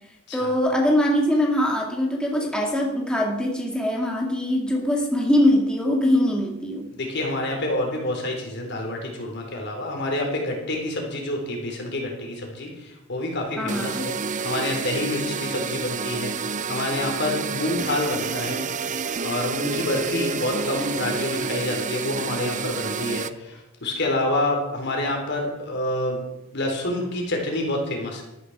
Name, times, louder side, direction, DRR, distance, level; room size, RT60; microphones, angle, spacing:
voice 1, 0.3-6.9 13.6-14.1, left 1 dB, 5° left, -1 dB, 2.2 m, -22 dB
voice 2, 6.9-14.1 14.4-18.6 19.2-26.2 26.5-28.2, left 1 dB, 60° left, 1 dB, 4.0 m, -27 dB
sound 1, 13.7-23.3, right 5 dB, 40° right, 0.6 m, -29 dB
13.0 x 13.0 x 4.8 m, 0.91 s
head